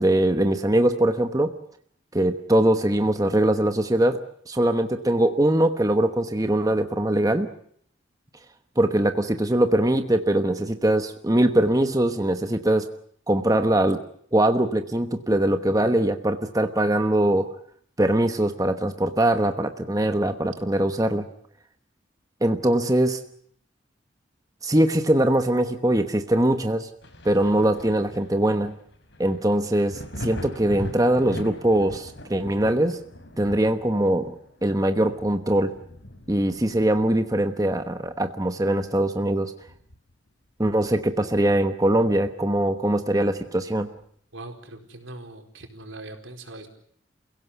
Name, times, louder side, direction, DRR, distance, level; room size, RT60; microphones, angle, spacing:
voice 1, 0.0-1.5 2.1-7.5 8.8-12.9 13.3-14.0 14.3-17.5 18.0-21.2 22.4-23.2 24.6-26.9 27.2-28.7 29.2-33.0 33.4-34.4 34.6-35.7 36.3-39.5 40.6-43.9, right 1 dB, 20° right, 7 dB, 1.1 m, -22 dB
Thunder, 27.0-38.4 38.8-40.3 40.6-40.7 41.3-42.6 44.0-44.1, left 1 dB, 65° left, 3.7 m, -42 dB
voice 2, 44.3-46.7, right 2 dB, 85° right, 4 dB, 4.6 m, -41 dB
29.0 x 17.0 x 8.2 m, 0.65 s
head